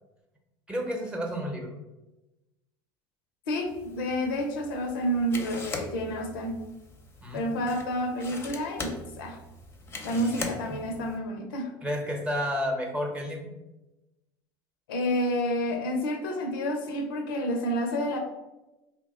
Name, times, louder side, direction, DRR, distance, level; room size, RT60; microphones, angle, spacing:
voice 1, 0.7-1.7 7.2-7.5 10.1-10.3 10.7-10.8 11.8-13.5, equal, 10° right, 1 dB, 0.8 m, -31 dB
voice 2, 3.5-6.6 7.3-9.4 10.0-11.7 14.9-18.2, equal, 85° left, 4 dB, 0.5 m, -29 dB
sound 1, 3.7-11.2, left 3 dB, 20° left, 0.6 m, -41 dB
2.8 x 2.1 x 4.1 m, 1.0 s
hypercardioid pair, 80°, 11 cm